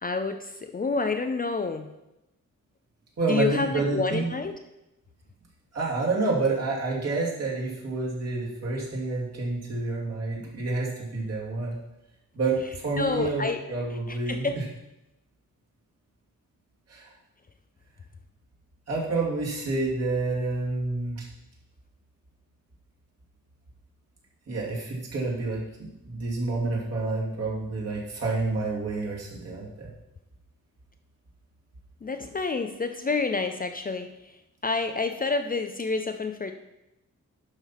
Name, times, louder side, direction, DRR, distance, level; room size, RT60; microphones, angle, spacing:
voice 1, 0.0-1.9 3.3-4.5 13.0-13.6 14.1-14.6 32.0-34.1 34.6-36.5, left 4 dB, 30° left, 6 dB, 0.5 m, -28 dB
voice 2, 3.2-4.3 5.7-11.8 12.3-14.6 16.9-17.1 18.9-21.3 24.5-29.9, right 3 dB, 50° right, -4 dB, 2.6 m, -29 dB
11.5 x 4.4 x 5.8 m, 0.91 s
wide cardioid pair, 180°, 32 cm